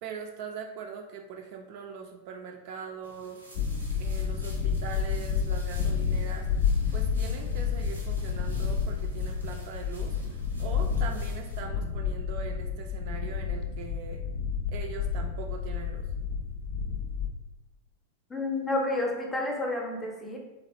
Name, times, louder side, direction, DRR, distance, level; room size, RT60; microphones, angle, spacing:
voice 1, 0.0-3.4 4.0-14.2 14.7-16.0, right 6 dB, 45° right, 2 dB, 0.3 m, -41 dB
sound 1, 3.0-11.6, right 1 dB, 85° right, 0.6 m, -52 dB
sound 2, 3.6-17.3, left 6 dB, 50° left, 0.3 m, -30 dB
voice 2, 18.3-20.4, left 2 dB, 15° left, 0 dB, 0.6 m, -30 dB
3.1 x 2.3 x 2.8 m, 1.0 s
figure-of-eight pair, 90°, 0 cm